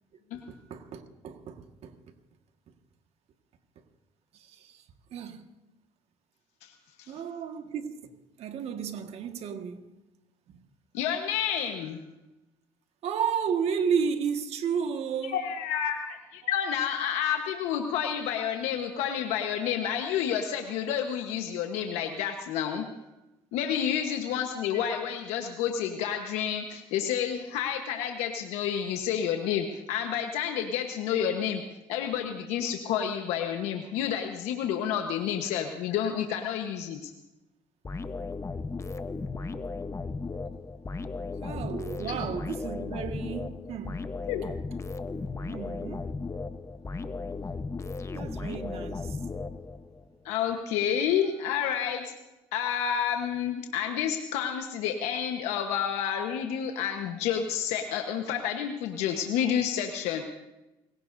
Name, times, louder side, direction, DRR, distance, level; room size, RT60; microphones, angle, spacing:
voice 1, 0.3-2.0 4.3-4.8 5.1-5.5 7.1-9.8 10.5-10.6 13.0-15.4 16.4-16.6 41.4-44.0 45.5-46.1 48.1-49.3, right 7 dB, 70° right, 1.7 m, -33 dB
voice 2, 10.9-12.0 15.2-22.9 23.5-31.6 31.9-37.1 44.3-44.4 50.2-52.1 52.5-60.2, left 9 dB, 90° left, 1.2 m, -29 dB
sound 1, 37.8-50.0, left 3 dB, 25° left, 1.0 m, -36 dB
29.5 x 17.0 x 2.7 m
supercardioid pair, 75°, 11 cm